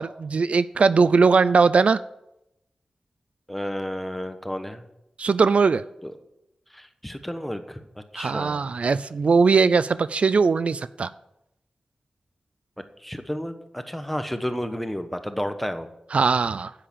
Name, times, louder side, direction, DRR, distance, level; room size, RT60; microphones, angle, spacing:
voice 1, 0.0-2.0 5.2-5.8 8.2-11.1 16.1-16.7, right 4 dB, 65° right, 16 dB, 0.4 m, -20 dB
voice 2, 3.5-4.8 6.0-6.1 6.7-8.7 13.0-15.9, equal, 5° left, 8 dB, 1.2 m, -31 dB
9.9 x 8.6 x 7.2 m, 0.85 s
wide cardioid pair, 85°, 2 cm